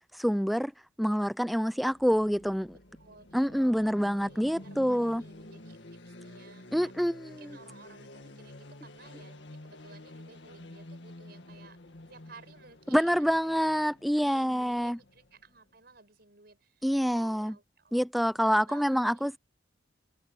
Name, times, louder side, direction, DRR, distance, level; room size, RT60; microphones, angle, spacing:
voice 1, 0.1-0.7 1.0-2.7 3.3-5.2 6.7-7.6 12.9-15.0 16.8-17.6 17.9-19.4, equal, ahead, 0.3 m, -27 dB
sound 1, 1.8-15.7, left 1 dB, 65° left, 2.2 m, -50 dB
voice 2, 2.7-11.8 12.1-13.7 14.1-17.9 18.2-19.2, right 3 dB, 50° right, 5.7 m, -56 dB
head